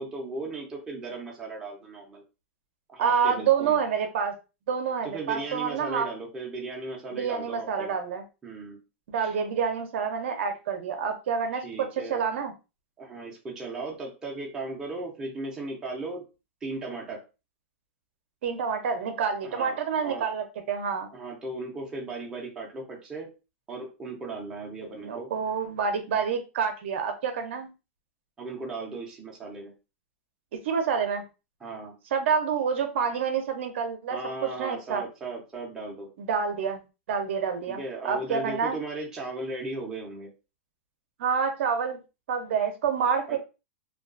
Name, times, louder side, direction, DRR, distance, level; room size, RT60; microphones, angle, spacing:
voice 1, 0.0-2.2 2.9-3.8 5.0-8.0 8.4-8.8 9.2-9.3 11.5-12.2 13.0-16.2 16.6-17.2 19.4-20.3 21.1-23.3 23.7-25.3 28.4-29.7 31.6-31.9 34.1-36.1 37.7-40.3 43.3-43.4, right 3 dB, 10° right, -2 dB, 0.5 m, -36 dB
voice 2, 3.0-4.3 4.7-6.1 7.1-8.2 9.1-12.5 18.4-21.1 24.8-27.7 30.6-31.2 32.1-35.0 36.2-36.8 37.1-37.8 38.0-38.8 41.2-42.0 42.3-43.4, right 6 dB, 60° right, 5 dB, 0.5 m, -28 dB
2.3 x 2.3 x 2.4 m, 0.30 s
supercardioid pair, 165°, 7 cm